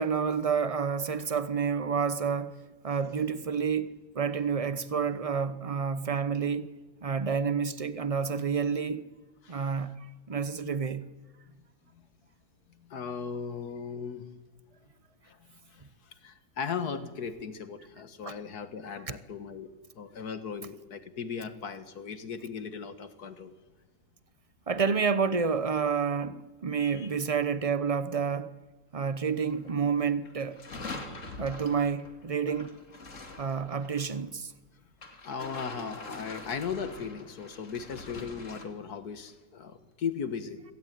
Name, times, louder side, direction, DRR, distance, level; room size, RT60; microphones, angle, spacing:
voice 1, 0.0-6.7 7.0-9.0 9.5-9.9 10.3-11.0 18.2-18.3 19.1-19.2 24.7-28.5 28.9-30.6 31.4-32.8 33.4-34.5, right 6 dB, 30° right, 0.7 m, -29 dB
voice 2, 9.4-9.8 11.5-11.7 11.9-12.1 12.7-14.3 15.2-19.7 20.0-23.5 26.8-27.1 30.7-30.8 31.1-31.2 35.2-40.6, left 6 dB, 65° left, 1.9 m, -38 dB
sound 1, 29.4-29.9 30.2-34.2 35.0-38.6, left 2 dB, 50° left, 2.6 m, -44 dB
25.5 x 18.0 x 9.3 m
omnidirectional pair, 1.8 m